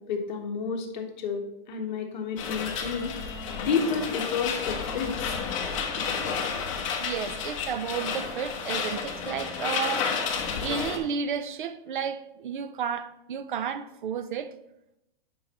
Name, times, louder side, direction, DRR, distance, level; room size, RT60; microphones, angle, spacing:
voice 1, 0.1-3.2 3.6-5.1, left 5 dB, 50° left, 1.3 m, -30 dB
sound 1, 2.4-11.0, left 6 dB, 35° left, 1.1 m, -31 dB
voice 2, 7.0-10.1 10.6-14.5, right 7 dB, 60° right, 0.6 m, -32 dB
11.5 x 5.3 x 3.0 m
hypercardioid pair, 170°, 29 cm